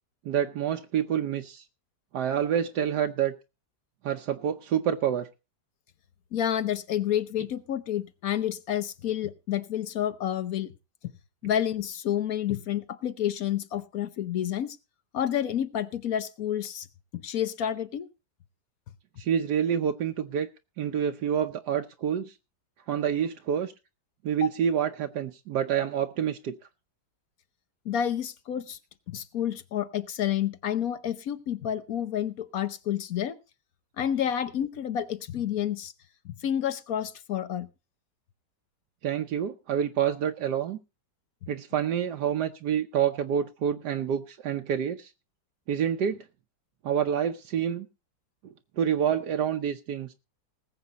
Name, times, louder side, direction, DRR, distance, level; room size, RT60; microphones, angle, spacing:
voice 1, 0.2-1.6 2.1-3.3 4.0-5.3 19.2-20.5 20.8-22.4 22.9-23.7 24.2-26.5 39.0-40.8 41.5-45.1 45.7-46.2 46.8-47.9 48.4-50.1, right 9 dB, 75° right, 1.4 m, -27 dB
voice 2, 6.3-10.7 11.4-14.8 15.1-16.9 17.1-18.1 24.4-24.5 27.8-28.8 29.1-33.4 34.0-35.9 36.2-37.7, left 10 dB, 60° left, 1.2 m, -29 dB
19.5 x 8.0 x 4.0 m
omnidirectional pair, 1.8 m